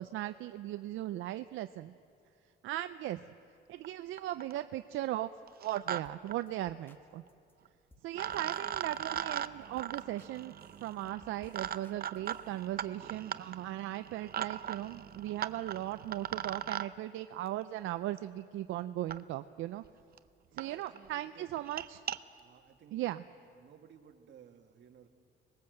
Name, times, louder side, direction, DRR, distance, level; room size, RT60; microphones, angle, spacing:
voice 1, 0.0-1.9 2.6-3.2 3.7-5.3 5.6-7.2 8.0-19.8 20.5-22.0 22.9-23.2, right 14 dB, 85° right, 10 dB, 0.5 m, -38 dB
sound 1, 3.8-3.9 4.2-4.6 5.5-6.0 6.3-6.4 7.6-7.7 8.1-16.9 18.2-18.3 19.1-19.2 19.8-19.9 20.2-20.3 20.6-20.7 21.0-21.2 21.6-22.2, right 9 dB, 50° right, 0.7 m, -39 dB
sound 2, 6.0-6.2 6.5-7.0 7.3-7.5 7.9-8.1 8.3-9.4 9.8-10.3 10.6-12.6, left 2 dB, 10° left, 1.4 m, -62 dB
voice 2, 20.5-21.7 22.4-23.2 23.6-25.1, right 8 dB, 65° right, 5 dB, 1.8 m, -57 dB
25.5 x 20.5 x 7.8 m, 2.6 s
cardioid pair, 90°, 20 cm